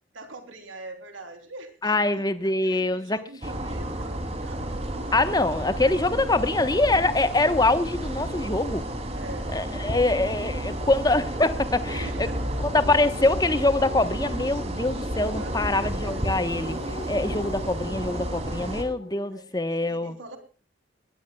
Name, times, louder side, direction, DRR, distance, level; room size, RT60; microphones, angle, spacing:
voice 1, 0.1-5.6 9.1-10.1 11.9-12.5 15.3-16.3 19.3-20.4, right 2 dB, 80° right, 7 dB, 3.6 m, -44 dB
voice 2, 1.8-3.2 5.1-8.9 9.5-12.3 12.6-16.8 17.1-20.2, left 2 dB, 20° left, 11 dB, 1.1 m, -24 dB
sound 1, 3.4-18.8, right 1 dB, 30° right, 3.0 m, -31 dB
sound 2, 9.4-19.3, left 1 dB, 50° left, 6.6 m, -44 dB
20.5 x 17.5 x 2.3 m, 0.36 s
head